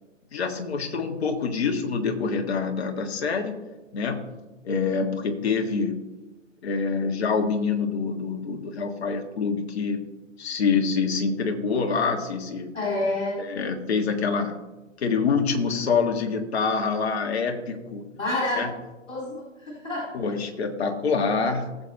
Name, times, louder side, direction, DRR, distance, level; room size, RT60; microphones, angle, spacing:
voice 1, 0.3-3.6 3.9-4.3 4.6-6.0 6.6-10.0 10.4-12.7 13.4-14.5 15.0-18.0 18.6-18.7 20.1-21.8, left 5 dB, 55° left, 4 dB, 1.7 m, -26 dB
voice 2, 12.7-13.4 18.1-18.6 19.1-20.1, left 2 dB, 70° left, -5 dB, 4.2 m, -28 dB
18.5 x 7.9 x 2.9 m, 1.1 s
figure-of-eight pair, 130°, 38 cm